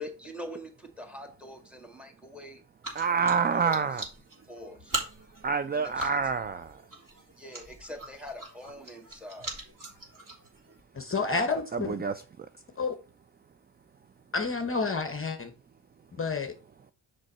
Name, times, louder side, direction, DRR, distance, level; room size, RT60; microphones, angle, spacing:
voice 1, 0.0-2.6 3.5-3.8 4.5-5.0 5.7-6.3 7.4-9.6, left 1 dB, ahead, 1.8 m, -43 dB
sound 1, 2.8-10.8, right 2 dB, 40° right, 3.2 m, -41 dB
voice 2, 2.9-4.1 5.2-6.9 11.7-12.5, right 5 dB, 25° right, 0.3 m, -28 dB
voice 3, 10.9-11.9 12.8-13.0 14.3-15.5 16.2-16.5, left 4 dB, 25° left, 0.9 m, -29 dB
6.3 x 5.4 x 4.3 m
cardioid pair, 95°, 50 cm